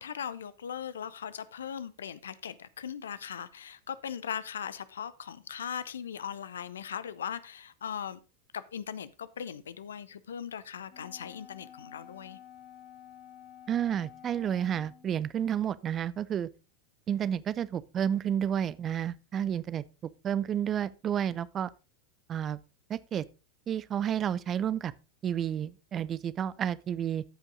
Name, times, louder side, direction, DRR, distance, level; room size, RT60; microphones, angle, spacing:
voice 1, 0.0-8.2 8.5-12.4, left 8 dB, 70° left, 0.6 m, -39 dB
Wind instrument woodwind instrument, 10.9-15.2, left 10 dB, 40° left, 2.1 m, -51 dB
voice 2, 13.7-16.5 17.1-19.8 20.2-21.7 22.3-22.6 22.9-23.2 23.7-24.9 25.2-27.2, right 9 dB, 30° right, 0.5 m, -30 dB
14.0 x 5.4 x 3.8 m
figure-of-eight pair, 85°, 0 cm